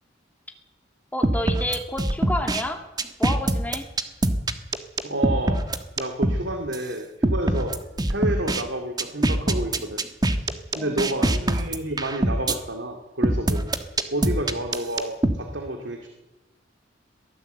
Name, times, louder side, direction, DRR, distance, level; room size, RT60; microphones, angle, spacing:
voice 1, 1.1-2.8 3.2-3.9 10.7-11.3, left 1 dB, 10° left, 4 dB, 2.5 m, -30 dB
sound 1, 1.2-2.6 3.0-6.4 6.7-6.8 7.2-8.6 9.0-12.6 13.2-15.3, right 1 dB, 20° right, 1.3 m, -23 dB
voice 2, 5.0-7.8 8.1-10.0 10.3-10.5 10.7-13.7 14.1-16.1, right 1 dB, 70° right, 4 dB, 2.3 m, -30 dB
22.5 x 15.5 x 8.0 m, 1.0 s
head